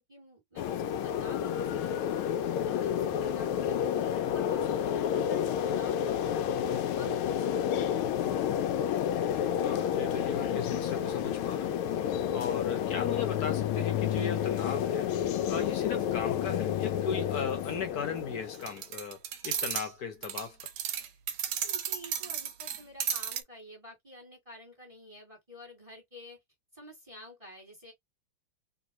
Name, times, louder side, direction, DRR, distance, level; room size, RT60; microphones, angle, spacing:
voice 1, 0.0-2.3 2.6-6.2 6.6-7.8 12.3-12.6 21.6-26.4 26.7-27.9, equal, 15° right, 1.9 m, -50 dB
sound 1, 0.6-18.8, left 9 dB, 90° left, 1.5 m, -30 dB
voice 2, 8.2-8.7 9.5-11.8 12.3-15.2 15.5-20.7, left 6 dB, 55° left, 1.3 m, -37 dB
sound 2, 18.5-19.9 20.2-23.4, right 9 dB, 85° right, 1.5 m, -34 dB
3.6 x 2.9 x 2.9 m
omnidirectional pair, 2.3 m